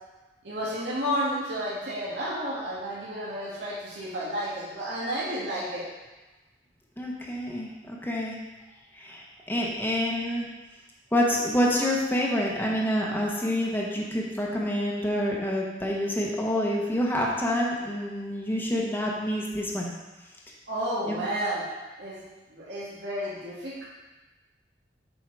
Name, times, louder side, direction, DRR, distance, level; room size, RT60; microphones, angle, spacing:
voice 1, 0.4-5.8 20.7-21.7 22.0-22.2 22.5-23.8, equal, 75° right, -8 dB, 2.0 m, -31 dB
voice 2, 7.0-8.4 8.9-10.5 11.1-19.9 21.1-21.2, equal, 10° left, -3 dB, 1.1 m, -27 dB
7.6 x 4.6 x 4.8 m, 1.1 s
head